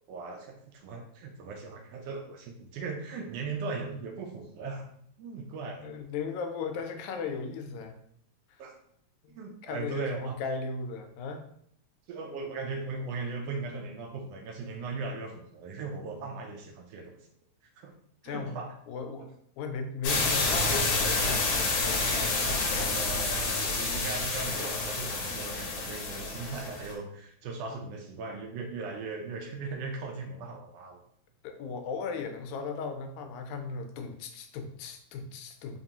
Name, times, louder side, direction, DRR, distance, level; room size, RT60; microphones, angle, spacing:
voice 1, 0.1-4.9 5.2-5.9 8.6-8.8 9.3-10.3 12.1-17.2 17.7-17.9 18.2-18.7 22.9-31.0, right 4 dB, 80° right, 2 dB, 1.4 m, -38 dB
voice 2, 5.8-8.0 9.2-9.3 9.6-11.4 18.2-18.6 18.9-21.6 31.4-35.8, left 4 dB, 85° left, 5 dB, 2.0 m, -36 dB
sound 1, 20.0-26.9, left 3 dB, 70° left, 1.8 m, -29 dB
4.7 x 2.9 x 2.7 m, 0.66 s
omnidirectional pair, 3.3 m